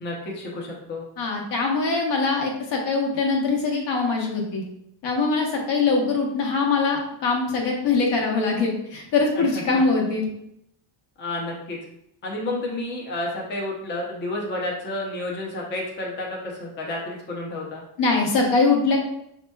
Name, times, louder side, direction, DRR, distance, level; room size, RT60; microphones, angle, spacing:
voice 1, 0.0-1.0 9.4-9.8 11.2-11.8 12.2-17.8, left 2 dB, 25° left, -1 dB, 0.5 m, -31 dB
voice 2, 1.2-4.6 5.0-10.3 18.0-19.0, left 4 dB, 65° left, 0 dB, 1.1 m, -22 dB
5.3 x 2.9 x 2.2 m, 0.76 s
cardioid pair, 160°, 46 cm